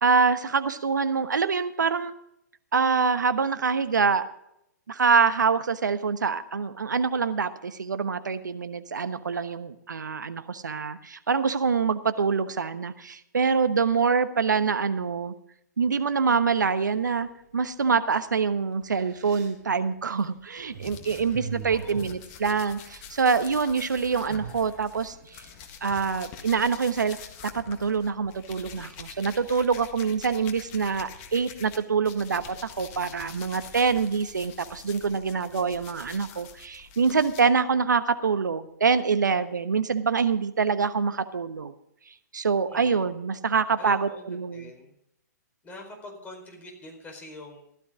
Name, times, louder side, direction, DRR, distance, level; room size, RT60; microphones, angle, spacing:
voice 1, 0.0-2.1 2.7-4.2 4.9-15.3 15.8-25.4 25.8-27.2 27.5-41.7 42.3-44.7, right 5 dB, 80° right, 11 dB, 1.2 m, -25 dB
sound 1, 16.9-17.5 18.3-18.4 18.7-23.0 23.2-23.9 24.1-26.2, right 7 dB, 40° right, 6.0 m, -42 dB
sound 2, 20.8-31.8 32.0-37.4, left 7 dB, 35° left, 1.6 m, -46 dB
voice 2, 21.6-22.1 42.7-43.0 43.8-44.9 45.6-47.6, left 2 dB, 15° left, 1 dB, 4.5 m, -44 dB
15.5 x 12.5 x 3.7 m, 0.78 s
figure-of-eight pair, 125°, 10 cm